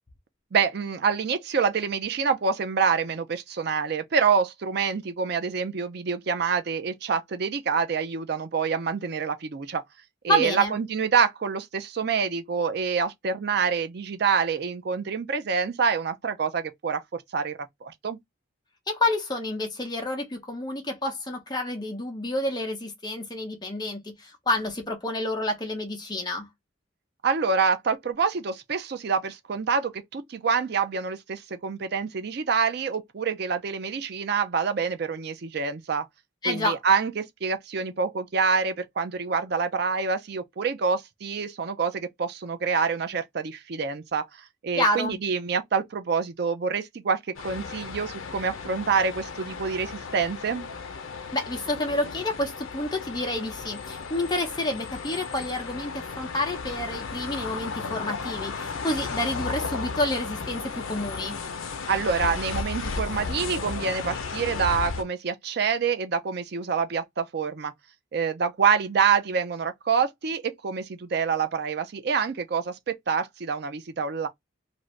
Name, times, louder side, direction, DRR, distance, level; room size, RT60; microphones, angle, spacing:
voice 1, 0.5-9.8 10.2-18.2 27.2-36.1 36.4-50.7 61.9-67.7 68.1-74.3, right 5 dB, 50° right, 0.4 m, -26 dB
voice 2, 10.3-10.8 18.9-26.5 36.4-36.8 44.8-45.2 51.3-61.4, left 1 dB, 20° left, 0.7 m, -29 dB
sound 1, 47.3-65.0, left 4 dB, 80° left, 0.6 m, -34 dB
2.6 x 2.5 x 3.1 m
head